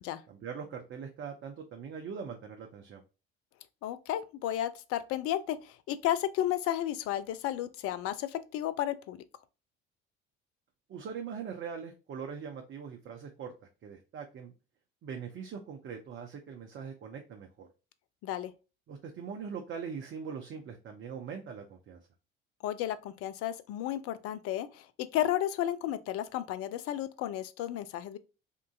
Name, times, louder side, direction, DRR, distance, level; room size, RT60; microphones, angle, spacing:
voice 1, 0.3-3.0 10.9-13.5 13.8-14.5 15.0-17.7 18.9-22.0, right 6 dB, 40° right, 0.6 m, -41 dB
voice 2, 3.8-9.2 18.2-18.5 22.6-28.2, left 12 dB, 45° left, 0.4 m, -33 dB
3.6 x 2.5 x 2.3 m
figure-of-eight pair, 55°, 31 cm